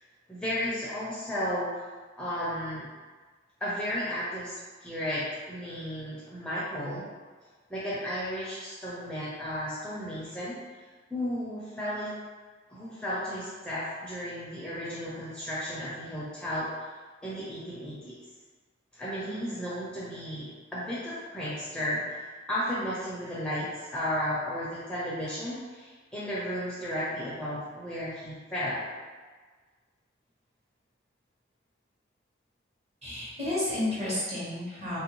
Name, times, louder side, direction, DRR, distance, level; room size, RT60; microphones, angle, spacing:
voice 1, 0.3-1.9 2.2-2.9 3.6-7.1 7.7-10.6 11.1-12.1 12.7-16.7 17.2-18.2 18.9-28.9, equal, 5° left, -9 dB, 0.5 m, -34 dB
voice 2, 33.0-35.0, left 1 dB, 35° right, -8 dB, 1.1 m, -31 dB
3.1 x 2.6 x 2.9 m, 1.4 s
head